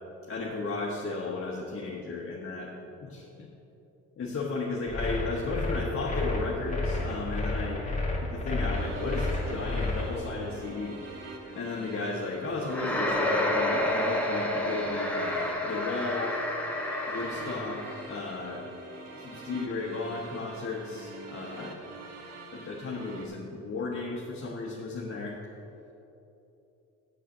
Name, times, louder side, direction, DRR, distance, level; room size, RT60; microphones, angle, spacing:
voice 1, 0.3-2.7 3.0-3.5 4.2-7.8 8.3-11.0 11.5-16.4 17.1-18.6 19.1-21.8 22.5-25.4, left 3 dB, 45° left, -3 dB, 1.2 m, -34 dB
sound 1, 4.9-10.1, left 2 dB, 25° left, 2.1 m, -30 dB
sound 2, 8.7-23.3, right 3 dB, 60° right, 1.4 m, -45 dB
sound 3, 12.7-18.1, left 1 dB, 5° left, 1.3 m, -29 dB
7.9 x 6.6 x 6.6 m, 3.0 s
cardioid pair, 90°, 30 cm